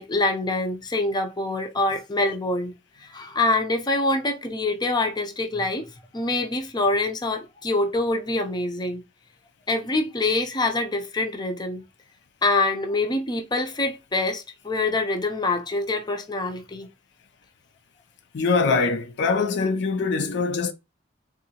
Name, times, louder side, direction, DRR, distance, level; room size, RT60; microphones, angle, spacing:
voice 1, 0.0-2.7 3.0-9.0 9.7-11.8 12.4-16.9, left 2 dB, 25° left, 0.6 m, -25 dB
voice 2, 18.3-20.7, left 4 dB, 65° left, 0.4 m, -23 dB
3.8 x 2.6 x 2.8 m
head